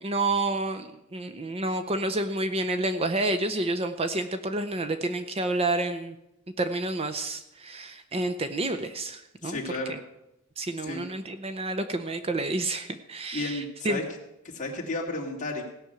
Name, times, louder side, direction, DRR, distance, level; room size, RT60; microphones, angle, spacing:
voice 1, 0.0-6.1 6.6-9.6 9.9-10.0 10.6-14.0, right 2 dB, 25° right, 8 dB, 0.6 m, -29 dB
voice 2, 9.4-10.0 10.8-11.0 13.3-14.0 14.4-15.6, left 2 dB, 35° left, 0 dB, 2.4 m, -33 dB
16.5 x 6.1 x 8.0 m, 0.88 s
head